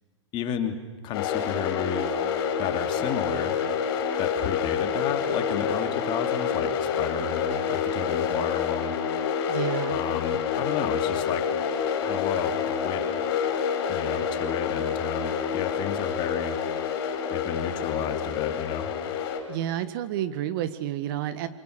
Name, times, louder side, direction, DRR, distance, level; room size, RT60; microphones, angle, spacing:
voice 1, 0.3-0.7 1.0-2.2 2.6-3.5 4.2-9.0 9.9-11.5 12.0-13.0 13.9-16.6 17.3-18.9, left 8 dB, 30° left, 6 dB, 2.8 m, -32 dB
sound 1, 1.1-19.4, left 7 dB, 50° left, 5.5 m, -28 dB
voice 2, 9.5-10.0 19.5-21.5, right 11 dB, 45° right, 12 dB, 1.7 m, -30 dB
28.0 x 25.0 x 6.8 m, 1.3 s
hypercardioid pair, 130°, 16 cm